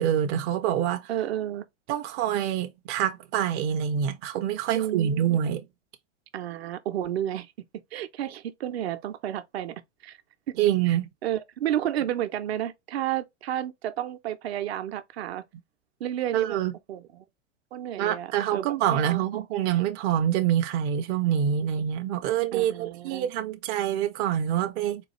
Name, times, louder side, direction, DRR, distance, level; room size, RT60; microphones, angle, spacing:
voice 1, 0.0-1.1 1.9-5.6 10.6-11.1 16.3-16.7 18.0-25.0, right 10 dB, 30° right, 0.4 m, -26 dB
voice 2, 1.1-1.6 4.7-5.4 6.3-7.5 7.9-9.7 10.0-10.2 10.9-15.4 16.0-16.6 16.9-17.2 17.7-19.2 22.5-23.3, right 11 dB, 60° right, 0.7 m, -31 dB
3.9 x 2.4 x 2.9 m
hypercardioid pair, 110°, 35 cm